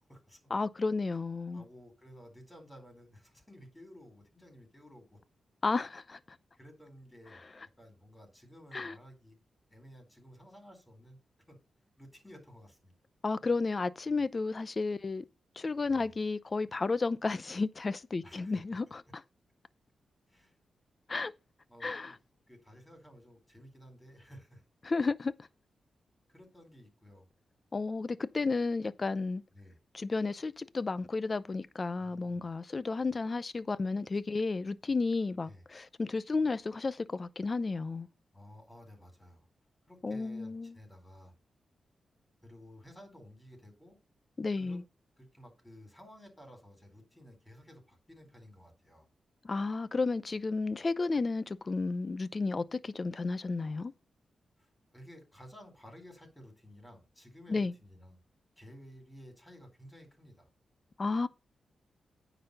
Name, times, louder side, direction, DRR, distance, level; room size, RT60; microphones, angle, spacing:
voice 1, 0.0-0.5 1.5-5.2 6.5-7.4 7.8-9.4 9.7-11.2 11.5-11.6 12.0-12.9 15.9-16.2 18.2-18.6 20.3-20.6 21.7-22.2 22.5-24.6 26.3-27.2 29.5-29.8 32.0-32.5 35.4-35.6 38.3-39.5 39.9-41.3 42.4-44.0 44.6-44.8 45.2-49.1 54.6-58.2 58.6-60.5, equal, 15° left, 4.1 m, -54 dB
voice 2, 0.5-1.6 5.6-6.2 8.7-8.9 13.2-15.2 15.6-19.2 21.1-21.3 21.8-22.1 24.8-25.3 27.7-29.4 29.9-38.1 40.0-40.7 44.4-44.8 49.4-53.9 57.5-57.7 61.0-61.3, left 3 dB, 35° left, 0.6 m, -32 dB
9.5 x 4.1 x 6.6 m
cardioid pair, 95°, 0 cm